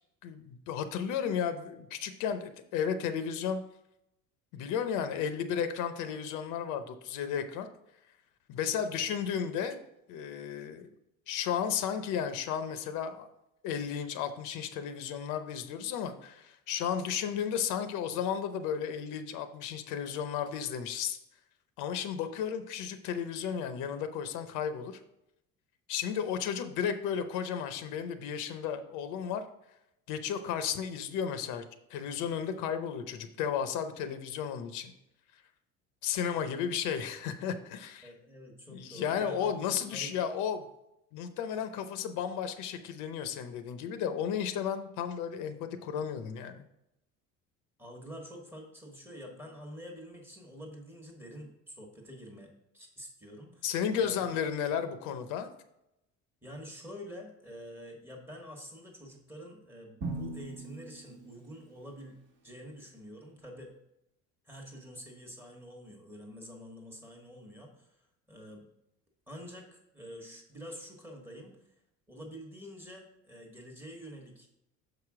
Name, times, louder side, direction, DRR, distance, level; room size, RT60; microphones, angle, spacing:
voice 1, 0.2-3.6 4.5-7.7 8.5-9.8 10.1-10.9 11.3-13.3 13.6-21.2 21.8-25.0 25.9-29.4 30.1-31.6 31.9-34.9 36.0-38.1 38.7-40.7 41.1-46.6 53.6-55.5, left 8 dB, 75° left, 9 dB, 0.8 m, -33 dB
voice 2, 38.0-40.2 47.8-53.7 54.0-54.2 56.4-63.7 64.4-67.9 68.3-68.6 69.3-71.7 72.1-74.5, equal, 5° right, 1 dB, 1.1 m, -47 dB
Drum, 60.0-62.0, right 2 dB, 35° right, 1.1 m, -40 dB
6.6 x 4.9 x 4.7 m, 0.82 s
cardioid pair, 175°, 31 cm